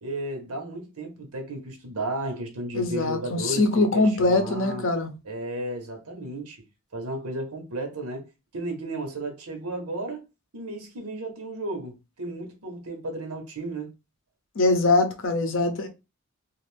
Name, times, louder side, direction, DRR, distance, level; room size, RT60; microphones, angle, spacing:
voice 1, 0.0-4.8 5.2-6.6 6.9-8.3 8.5-10.2 10.5-13.9, right 1 dB, 85° right, 1.0 m, -34 dB
voice 2, 2.7-5.1 14.6-15.9, left 2 dB, 60° left, 0.6 m, -22 dB
2.5 x 2.4 x 3.2 m
head